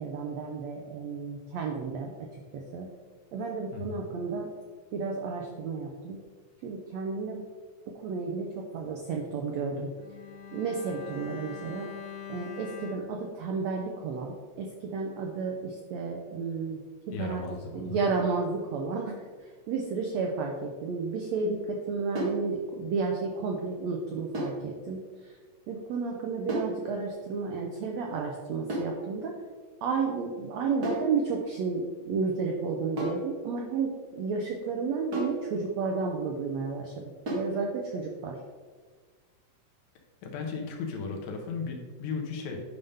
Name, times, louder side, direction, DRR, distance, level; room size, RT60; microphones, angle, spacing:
voice 1, 0.0-2.1 2.5-2.9 3.3-4.5 4.9-6.2 6.6-7.4 7.9-9.9 10.5-11.9 12.3-16.8 17.1-19.2 19.7-25.3 25.7-29.3 29.8-38.4, right 4 dB, 90° right, 1 dB, 1.5 m, -32 dB
voice 2, 3.7-4.1 17.1-18.0 40.2-42.6, left 5 dB, 90° left, 2 dB, 2.8 m, -36 dB
Bowed string instrument, 9.9-14.4 14.7-14.8, left 7 dB, 60° left, 2.8 m, -44 dB
sound 1, 22.1-22.5 24.3-24.6 26.5-26.8 28.7-29.0 30.8-31.1 33.0-33.3 35.1-35.4 37.3-37.6, right 1 dB, 50° right, 1.1 m, -32 dB
9.2 x 5.4 x 3.5 m, 1.5 s
omnidirectional pair, 3.9 m